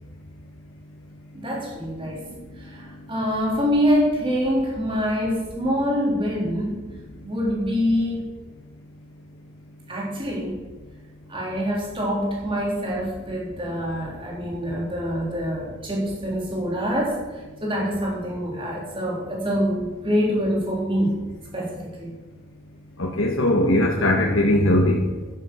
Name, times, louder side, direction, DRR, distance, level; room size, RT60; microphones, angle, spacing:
voice 1, 1.3-2.2 2.5-6.8 7.2-8.3 9.9-10.6 11.3-21.2 21.5-22.1, equal, 25° right, -3 dB, 3.8 m, -25 dB
voice 2, 23.0-25.0, left 1 dB, 70° left, -1 dB, 1.6 m, -19 dB
11.5 x 10.0 x 6.4 m, 1.2 s
head